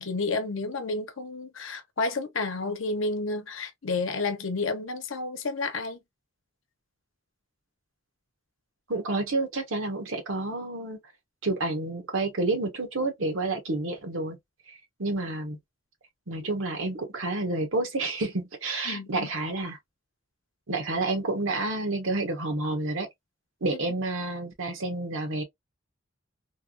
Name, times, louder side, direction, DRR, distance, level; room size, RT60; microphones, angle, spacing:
voice 1, 0.0-6.0 18.9-19.3 23.7-23.8, left 3 dB, 75° left, 0.8 m, -31 dB
voice 2, 8.9-11.0 11.4-14.4 15.0-15.6 16.3-19.8 20.7-23.1 23.6-25.4, right 2 dB, 85° right, 1.1 m, -29 dB
3.4 x 2.3 x 2.4 m
head